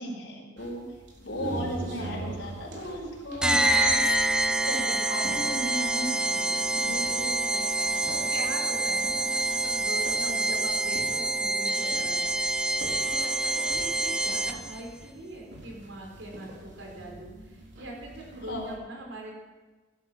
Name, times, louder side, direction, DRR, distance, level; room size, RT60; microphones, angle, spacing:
voice 1, 0.0-4.0 4.6-8.0 10.2-10.6 18.5-18.8, equal, 65° left, -1 dB, 4.7 m, -36 dB
sound 1, 0.6-18.7, right 1 dB, 60° right, 4.1 m, -44 dB
sound 2, 3.4-14.8, right 2 dB, 5° right, 0.7 m, -26 dB
voice 2, 6.7-7.2 8.1-12.3 12.8-19.3, right 1 dB, 80° right, 0 dB, 4.9 m, -42 dB
16.5 x 12.0 x 6.1 m, 1.3 s
head